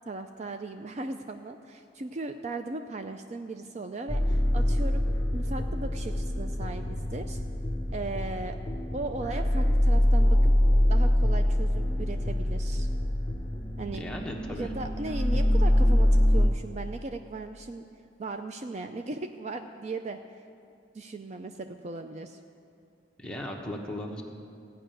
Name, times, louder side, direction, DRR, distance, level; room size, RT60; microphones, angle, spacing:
voice 1, 0.1-5.0 5.3-7.4 7.9-8.6 8.9-10.5 10.9-12.9 13.8-14.0 14.5-17.9 18.2-20.2 20.9-22.4, right 3 dB, 40° right, 7 dB, 0.4 m, -37 dB
sound 1, 4.1-16.5, left 1 dB, 20° left, 0.8 m, -25 dB
voice 2, 13.9-14.7 23.2-24.2, left 1 dB, 5° left, -1 dB, 1.1 m, -37 dB
15.5 x 5.6 x 9.1 m, 2.4 s
head